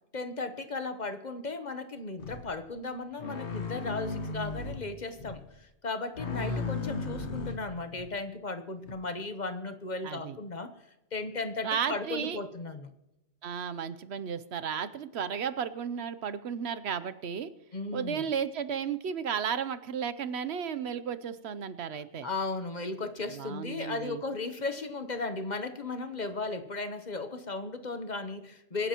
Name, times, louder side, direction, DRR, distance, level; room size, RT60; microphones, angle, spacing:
voice 1, 0.1-10.7 11.1-12.9 17.7-18.2 22.2-28.9, left 3 dB, 45° left, 9 dB, 1.0 m, -36 dB
sound 1, 2.2-2.5 3.2-4.9 5.2-5.4 6.1-8.1 8.9-9.0, left 4 dB, 80° left, 1.6 m, -35 dB
voice 2, 6.3-6.7 10.0-10.3 11.6-12.4 13.4-17.5 17.9-22.3 23.4-24.2, right 7 dB, 70° right, 13 dB, 1.0 m, -34 dB
25.5 x 10.5 x 3.0 m, 0.95 s
omnidirectional pair, 1.1 m